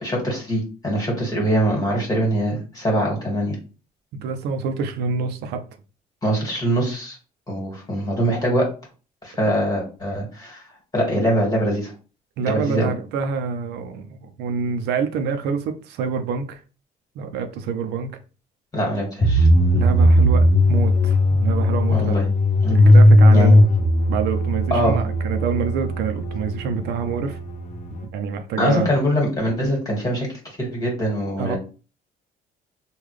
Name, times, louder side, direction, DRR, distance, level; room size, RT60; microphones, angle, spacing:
voice 1, 0.0-3.6 6.2-7.2 7.5-8.6 9.2-10.6 10.9-11.9 12.4-12.9 18.7-19.5 21.9-22.2 22.6-22.8 23.3-23.5 24.7-25.0 28.6-30.3 30.6-31.6, equal, 20° left, 1.7 m, -23 dB
voice 2, 4.1-5.6 12.4-16.6 17.2-18.1 19.7-22.2 22.7-23.6 24.1-27.4 28.1-28.9 31.4-31.6, right 6 dB, 80° right, 0.5 m, -26 dB
sound 1, 19.2-28.0, left 1 dB, 45° left, 0.8 m, -17 dB
3.6 x 2.3 x 3.2 m
cardioid pair, 110°, 17 cm